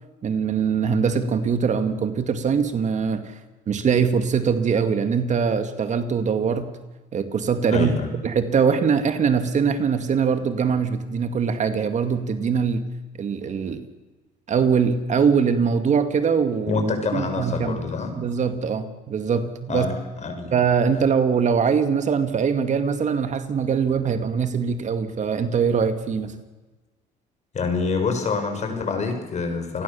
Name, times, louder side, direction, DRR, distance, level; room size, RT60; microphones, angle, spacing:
voice 1, 0.2-3.4 3.7-6.8 7.1-7.9 8.2-12.9 13.2-13.9 14.5-16.8 17.1-17.8 18.2-19.9 20.5-26.4, right 6 dB, 45° right, 9 dB, 2.2 m, -22 dB
voice 2, 7.7-8.1 16.7-18.1 19.7-19.9 20.2-20.5 27.5-29.8, left 4 dB, 40° left, 6 dB, 6.5 m, -26 dB
28.5 x 20.5 x 7.1 m, 1.2 s
cardioid pair, 110°, 17 cm